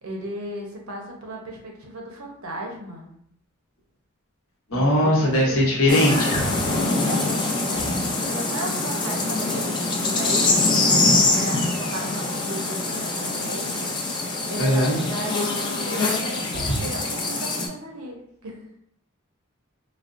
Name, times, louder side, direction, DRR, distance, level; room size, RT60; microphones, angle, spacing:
voice 1, 0.0-3.1 4.7-5.7 7.0-18.8, right 1 dB, 80° right, 0 dB, 0.7 m, -36 dB
voice 2, 4.7-6.5 7.8-7.9 14.6-15.0 16.6-16.8, left 1 dB, 70° left, -3 dB, 0.9 m, -20 dB
sound 1, 5.9-17.7, left 2 dB, 20° left, 0.4 m, -24 dB
4.1 x 2.0 x 2.5 m, 0.72 s
head